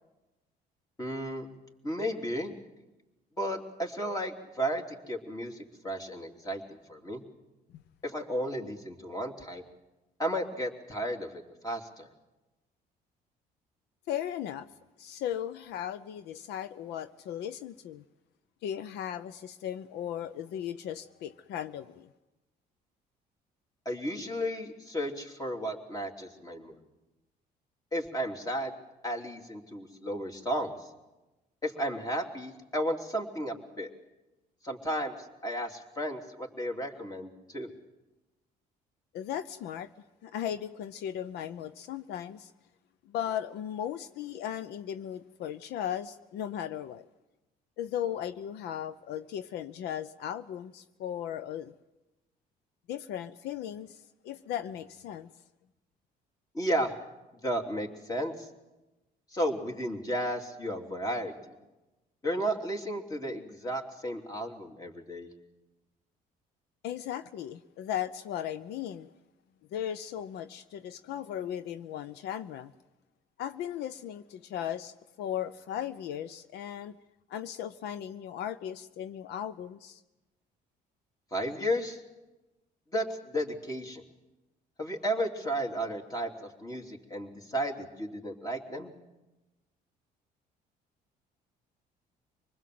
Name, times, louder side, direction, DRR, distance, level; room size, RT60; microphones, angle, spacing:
voice 1, 1.0-1.5 1.8-2.5 3.4-7.2 8.0-9.6 10.2-12.1 23.8-26.8 27.9-28.7 29.0-30.9 31.6-33.9 34.6-37.7 56.5-57.0 57.4-58.5 59.3-61.5 62.2-65.3 81.3-82.0 82.9-84.0 84.8-88.9, equal, 20° left, 3.2 m, -33 dB
voice 2, 14.1-14.7 15.0-18.0 18.6-22.1 39.1-39.9 40.2-42.5 43.1-47.0 47.8-51.7 52.9-55.3 66.8-69.1 69.7-72.7 73.4-77.0 77.3-80.0, left 10 dB, 80° left, 0.7 m, -37 dB
25.5 x 20.0 x 7.7 m
cardioid pair, 110°, 17 cm